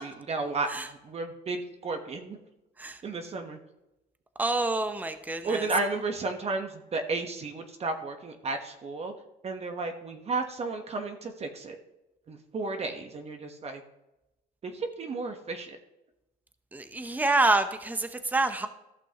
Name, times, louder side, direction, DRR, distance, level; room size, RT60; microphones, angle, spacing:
voice 1, 0.0-2.4 3.0-3.6 5.4-9.1 9.4-11.8 12.3-13.8 14.6-15.8, right 3 dB, 40° right, 5 dB, 1.2 m, -33 dB
voice 2, 4.4-5.7 16.7-18.7, right 2 dB, 10° right, 9 dB, 0.8 m, -27 dB
14.5 x 6.1 x 2.9 m, 0.94 s
cardioid pair, 110°, 17 cm